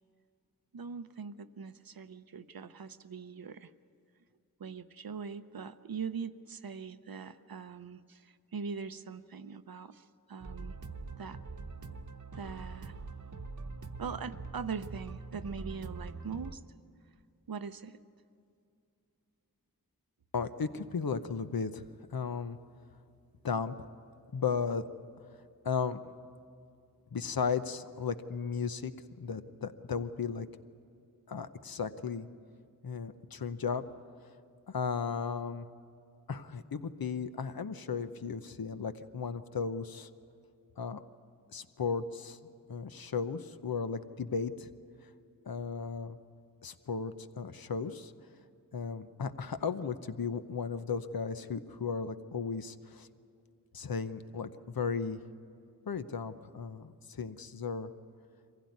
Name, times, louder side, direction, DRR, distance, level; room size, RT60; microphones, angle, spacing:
voice 1, 0.7-3.7 4.6-10.8 11.2-11.4 12.3-12.9 14.0-16.6 17.5-18.0, right 6 dB, 85° right, 11 dB, 0.8 m, -42 dB
sound 1, 10.4-16.5, right 3 dB, 55° right, 1.0 m, -43 dB
voice 2, 20.3-21.8 22.1-22.6 23.4-23.7 24.3-24.8 25.6-26.0 27.1-28.9 29.2-30.5 31.3-32.3 32.8-33.8 34.7-35.7 36.3-40.1 40.8-41.0 41.5-42.4 42.7-44.7 45.5-46.2 46.6-48.1 48.7-53.1 53.7-55.2 55.9-57.9, left 5 dB, 85° left, 10 dB, 0.8 m, -35 dB
24.0 x 16.0 x 9.4 m, 2.4 s
wide cardioid pair, 40°, 35 cm